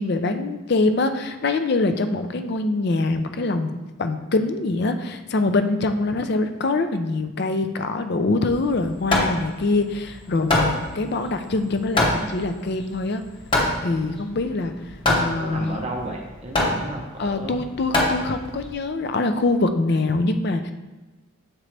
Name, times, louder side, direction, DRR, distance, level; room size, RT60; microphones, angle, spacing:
voice 1, 0.0-13.2 13.8-14.7 15.1-15.8 17.2-20.7, left 3 dB, 50° left, 8 dB, 0.4 m, -24 dB
Hammer, 8.5-18.7, left 1 dB, 25° left, 0.8 m, -25 dB
voice 2, 15.4-17.6, right 1 dB, 30° right, 1 dB, 0.7 m, -33 dB
7.3 x 3.9 x 3.3 m, 1.2 s
head